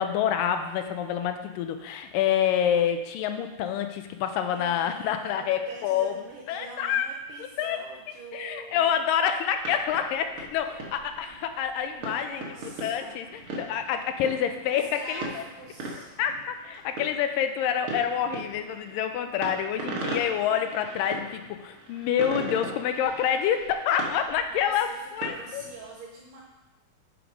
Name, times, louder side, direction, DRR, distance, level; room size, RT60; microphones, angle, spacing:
voice 1, 0.0-7.1 7.6-7.8 8.3-15.4 16.2-25.6, left 9 dB, 80° left, 7 dB, 2.3 m, -27 dB
voice 2, 4.5-8.9 12.0-13.2 14.7-16.1 24.5-26.4, right 3 dB, 75° right, -1 dB, 2.4 m, -45 dB
sound 1, 9.5-25.9, right 2 dB, 50° right, 1.8 m, -40 dB
7.9 x 6.3 x 5.1 m, 1.1 s
omnidirectional pair, 4.0 m